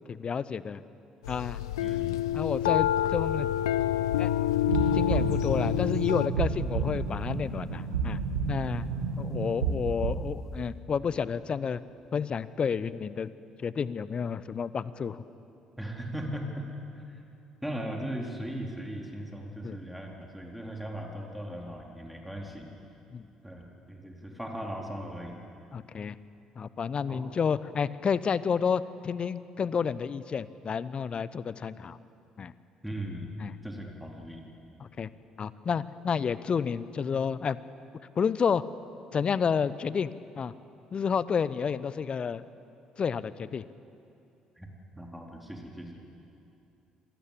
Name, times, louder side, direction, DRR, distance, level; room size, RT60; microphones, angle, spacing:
voice 1, 0.1-0.8 1.3-1.6 2.3-3.5 4.2-4.3 4.9-8.2 8.5-8.8 9.2-11.8 12.1-13.3 13.6-15.2 19.6-19.8 23.1-23.3 25.7-26.1 26.6-32.0 32.4-32.5 33.4-33.5 34.8-35.1 35.4-37.6 38.2-38.6 39.1-40.1 40.4-40.5 40.9-42.4 43.0-43.6, left 6 dB, 40° left, 17 dB, 0.9 m, -30 dB
sound 1, 1.2-6.3, left 12 dB, 80° left, 0.6 m, -27 dB
voice 2, 1.8-2.2 15.8-16.6 17.6-22.7 23.4-25.4 27.1-27.2 32.8-33.3 33.6-34.4 44.6-44.7 45.0-45.9, right 1 dB, 5° right, 0 dB, 4.1 m, -38 dB
sound 2, 4.7-10.3, right 5 dB, 85° right, 2.2 m, -31 dB
26.5 x 18.5 x 8.6 m, 2.7 s
figure-of-eight pair, 50°, 3 cm